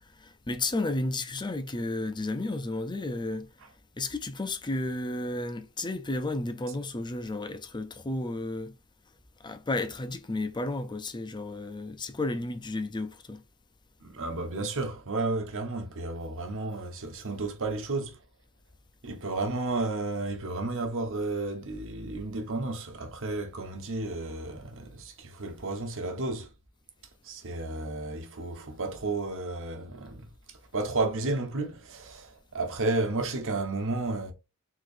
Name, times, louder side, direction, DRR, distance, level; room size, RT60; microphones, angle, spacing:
voice 1, 0.2-3.5 4.0-8.7 9.4-13.4, left 2 dB, 20° left, 0.6 m, -32 dB
voice 2, 14.0-18.2 19.0-26.5 27.2-34.3, right 2 dB, 65° right, 1.3 m, -32 dB
4.7 x 3.9 x 2.6 m
head